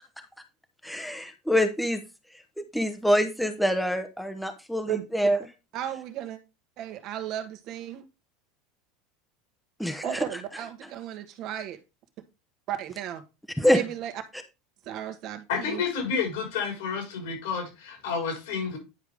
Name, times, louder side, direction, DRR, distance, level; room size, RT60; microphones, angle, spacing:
voice 1, 0.8-2.0 2.6-5.4 9.8-10.3 13.6-13.8, equal, ahead, 0.9 m, -25 dB
voice 2, 4.9-5.3 5.7-6.4 6.8-8.1 10.0-11.8 12.7-13.2 13.7-14.1 14.8-15.8, right 11 dB, 55° right, 1.4 m, -34 dB
voice 3, 15.5-18.8, left 6 dB, 80° left, 4.3 m, -30 dB
10.0 x 4.8 x 3.5 m
supercardioid pair, 100°, 0 cm